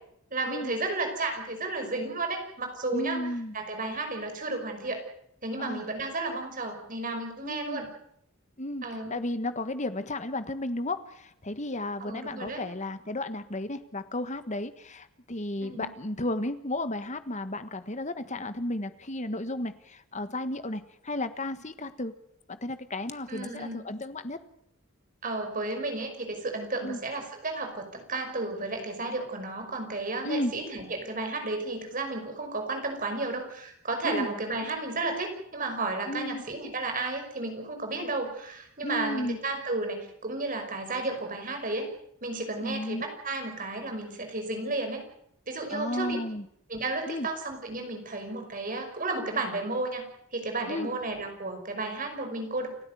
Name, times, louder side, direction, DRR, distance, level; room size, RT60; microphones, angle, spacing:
voice 1, 0.3-3.2 3.5-5.0 5.4-7.9 8.8-9.2 12.0-12.6 15.6-15.9 23.3-23.8 25.2-41.9 42.2-45.0 45.5-46.2 46.7-50.0 50.3-52.7, right 2 dB, 40° right, 5 dB, 5.6 m, -33 dB
voice 2, 2.9-3.5 5.6-5.8 7.4-7.8 8.6-8.8 9.1-22.1 22.5-24.4 26.8-27.0 30.2-30.5 34.0-34.3 36.1-36.4 38.8-39.4 42.6-43.0 45.7-46.4 47.1-47.3 50.7-50.9, left 1 dB, 35° left, 11 dB, 1.5 m, -33 dB
29.5 x 13.0 x 9.4 m, 0.73 s
head